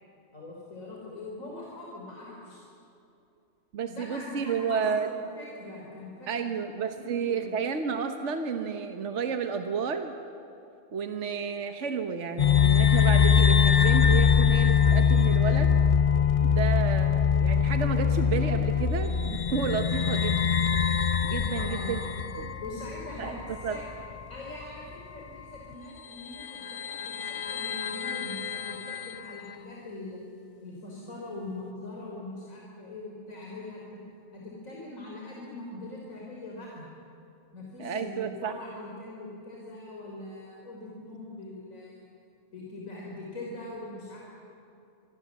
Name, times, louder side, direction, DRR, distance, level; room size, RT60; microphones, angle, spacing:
voice 1, 0.3-2.6 3.9-6.6 7.0-7.5 20.0-20.3 21.4-21.9 22.6-23.4 23.7-23.8 24.3-30.2 30.6-34.0 34.3-36.9 37.5-42.1 42.5-44.3, left 2 dB, 85° left, -3 dB, 4.1 m, -42 dB
voice 2, 3.7-5.1 6.3-10.1 10.9-15.8 16.4-20.4 21.2-22.0 22.4-22.6 23.2-23.3 23.6-23.8 37.8-38.6, right 6 dB, 65° right, 6 dB, 1.5 m, -31 dB
sound 1, 12.4-24.3 24.6-24.7 25.7-25.8 26.3-29.4, left 7 dB, 40° left, 0.5 m, -23 dB
25.5 x 23.5 x 7.3 m, 2.7 s
omnidirectional pair, 1.4 m